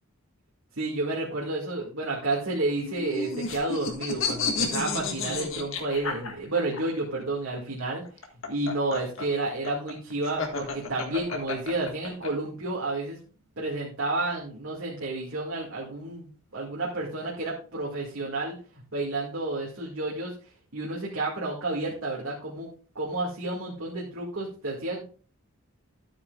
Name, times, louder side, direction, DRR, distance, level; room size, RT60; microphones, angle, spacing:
voice 1, 0.8-8.1 8.5-13.2 13.6-20.3 20.7-25.0, right 2 dB, 65° right, -3 dB, 2.0 m, -31 dB
sound 1, 2.8-6.8 8.1-12.3, left 4 dB, 70° left, 1.7 m, -31 dB
12.5 x 8.7 x 2.4 m, 0.38 s
head